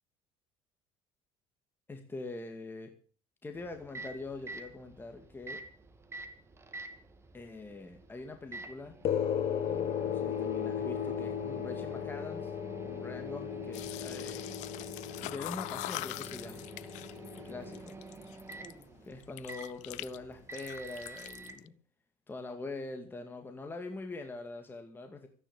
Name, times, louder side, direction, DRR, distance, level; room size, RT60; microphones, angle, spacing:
voice 1, 1.9-2.9 3.4-5.6 7.3-9.0 10.0-12.5 12.8-14.5 15.2-16.7 17.3-18.0 19.0-21.7 22.3-25.3, left 3 dB, 15° left, 5 dB, 2.1 m, -43 dB
Microwave oven, 3.5-21.6, right 3 dB, 20° right, 2.5 m, -48 dB
sound 1, 9.0-17.8, left 8 dB, 55° left, 1.7 m, -36 dB
sound 2, 13.7-18.8 19.2-20.2 20.4-21.7, left 19 dB, 70° left, 0.6 m, -43 dB
14.0 x 10.0 x 7.1 m, 0.41 s
cardioid pair, 120°, 13 cm